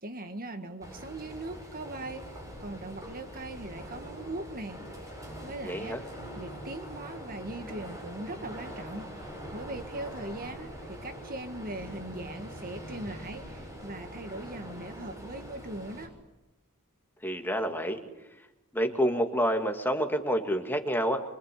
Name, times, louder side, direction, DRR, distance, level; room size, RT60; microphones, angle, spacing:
voice 1, 0.0-4.8 5.4-6.0 6.4-9.1 9.5-16.1, right 2 dB, 40° right, 7 dB, 1.7 m, -40 dB
sound 1, 0.8-16.1, equal, 15° right, 7.2 m, -43 dB
voice 2, 5.6-6.0 17.2-18.0 18.7-21.2, equal, 10° left, 4 dB, 2.4 m, -28 dB
25.5 x 25.0 x 8.7 m, 1.0 s
head